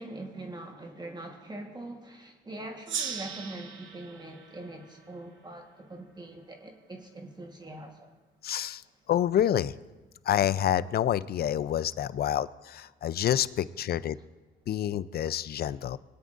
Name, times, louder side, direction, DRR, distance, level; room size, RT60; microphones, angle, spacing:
voice 1, 0.0-8.1, right 2 dB, 20° right, 3 dB, 1.3 m, -43 dB
Gong, 2.9-6.0, right 6 dB, 75° right, 1.1 m, -39 dB
voice 2, 8.4-8.8 9.1-9.7 10.3-14.2 14.7-16.0, left 10 dB, 50° left, 17 dB, 0.4 m, -28 dB
21.0 x 9.3 x 2.5 m, 1.2 s
cardioid pair, 90°, 20 cm